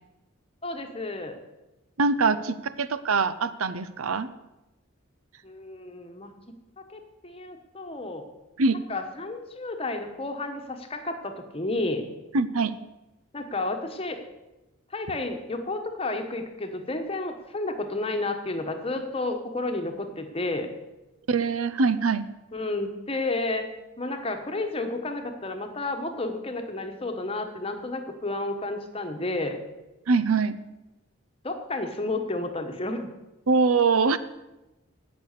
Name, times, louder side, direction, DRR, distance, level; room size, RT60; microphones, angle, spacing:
voice 1, 0.6-1.4 5.4-6.3 6.9-8.3 8.9-12.1 13.3-14.2 14.9-20.7 22.5-23.6 24.0-29.6 31.4-33.1, left 2 dB, 25° left, 6 dB, 1.1 m, -31 dB
voice 2, 2.0-4.3 8.6-8.8 12.3-12.8 21.3-22.2 30.1-30.6 33.5-34.2, right 4 dB, 85° right, 14 dB, 0.7 m, -23 dB
17.0 x 6.1 x 6.6 m, 1.0 s
head